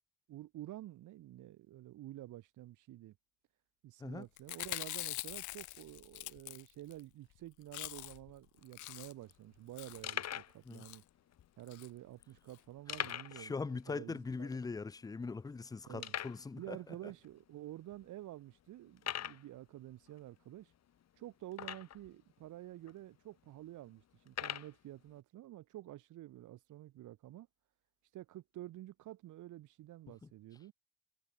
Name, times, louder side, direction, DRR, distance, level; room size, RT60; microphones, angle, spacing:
voice 1, 0.3-3.1 3.8-11.0 11.6-14.7 15.8-16.2 16.5-20.7 21.1-27.5 28.0-30.7, right 14 dB, 85° right, 2.6 m, -50 dB
Chewing mastication, 4.4-7.0 7.3-7.4 7.6-8.3 8.6-9.3 9.8-10.1 10.7-11.0 11.7-11.9 12.2-12.3 12.5-12.6, left 19 dB, 80° left, 0.5 m, -44 dB
sound 1, 8.6-8.7 8.8-9.0 9.5-9.6 10.0-10.6 11.3-11.4 12.9-13.5 13.8-13.9 14.3-14.4 15.0-15.1 16.0-16.4 17.2-17.3 17.9-18.0 19.0-19.4 21.5-22.1 22.9-23.0 24.3-24.7, left 10 dB, 60° left, 1.7 m, -40 dB
voice 2, 13.4-16.8, left 4 dB, 15° left, 0.4 m, -41 dB
cardioid pair, 90°, 30 cm